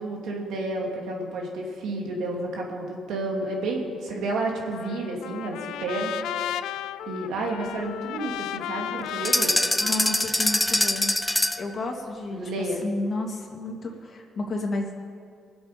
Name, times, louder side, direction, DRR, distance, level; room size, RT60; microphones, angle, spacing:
voice 1, 0.0-6.8 7.1-9.6 12.3-12.8, right 2 dB, 80° right, 0 dB, 2.7 m, -31 dB
Trumpet, 4.7-11.0, left 12 dB, 90° left, 0.3 m, -35 dB
sound 1, 9.2-11.7, left 1 dB, 10° left, 0.5 m, -23 dB
voice 2, 9.8-11.1 11.6-15.0, left 2 dB, 45° left, 1 dB, 2.6 m, -31 dB
23.5 x 7.9 x 5.2 m, 2.2 s
cardioid pair, 90°, 0 cm